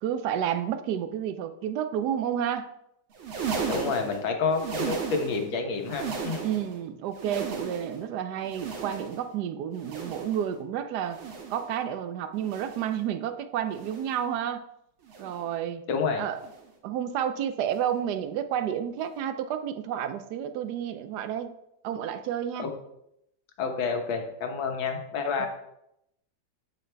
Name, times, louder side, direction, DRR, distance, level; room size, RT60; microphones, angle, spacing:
voice 1, 0.0-2.7 6.4-11.2 11.5-14.6 15.2-15.8 16.2-16.4 16.8-21.6 21.8-22.7 25.4-25.5, right 9 dB, 70° right, 11 dB, 1.0 m, -30 dB
sound 1, 3.1-5.5 5.8-6.8 7.1-8.1 8.4-9.3 9.7-10.5 11.0-11.7 12.4-13.0 13.7-14.3 15.0-15.5 16.4-16.7 17.7-17.9 19.0-19.1, right 5 dB, 90° right, 2.2 m, -36 dB
voice 2, 3.7-6.5 15.9-16.2 22.6-22.7 23.6-25.5, left 4 dB, 75° left, 4 dB, 1.8 m, -29 dB
8.3 x 7.6 x 3.4 m, 0.81 s
omnidirectional pair, 2.2 m